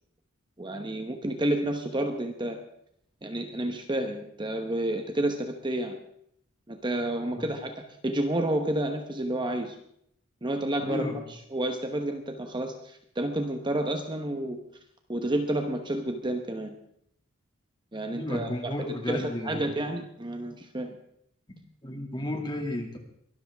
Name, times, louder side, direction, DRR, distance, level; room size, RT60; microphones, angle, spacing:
voice 1, 0.6-2.6 3.2-6.0 6.7-9.7 10.4-11.1 11.5-14.6 15.1-16.7 17.9-18.7 19.1-21.0, right 1 dB, 20° right, 5 dB, 1.1 m, -30 dB
voice 2, 10.8-11.3 18.1-19.7 21.8-23.0, left 1 dB, 20° left, 3 dB, 2.4 m, -33 dB
23.0 x 13.0 x 3.6 m, 0.71 s
head